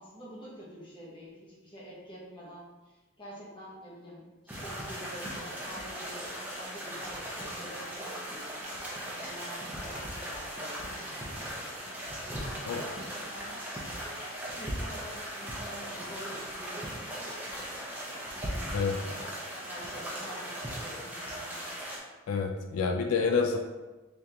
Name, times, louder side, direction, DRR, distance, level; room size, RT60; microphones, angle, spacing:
voice 1, 0.0-8.6 9.2-11.6 12.2-13.7 14.6-17.4 18.3-19.2 19.7-21.6, equal, 20° left, -6 dB, 1.0 m, -47 dB
sound 1, 4.5-22.0, equal, 10° right, 0.6 m, -38 dB
voice 2, 22.3-23.6, left 5 dB, 85° left, 4 dB, 0.4 m, -28 dB
3.6 x 3.4 x 2.9 m, 1.2 s
head